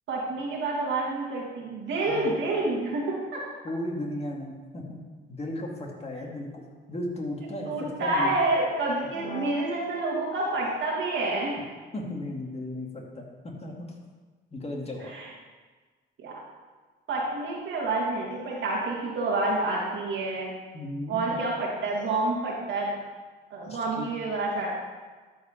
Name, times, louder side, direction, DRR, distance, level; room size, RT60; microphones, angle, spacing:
voice 1, 0.1-3.4 7.7-11.6 15.0-15.3 16.2-16.4 17.1-20.5 21.1-23.0 23.5-24.7, right 2 dB, 70° right, -4 dB, 2.0 m, -28 dB
voice 2, 3.6-5.0 5.3-8.3 9.1-9.6 11.9-13.9 14.5-15.1 20.7-21.4 23.7-24.1, left 1 dB, 30° left, 0 dB, 1.9 m, -35 dB
12.5 x 4.7 x 4.4 m, 1.4 s
cardioid pair, 90°, 20 cm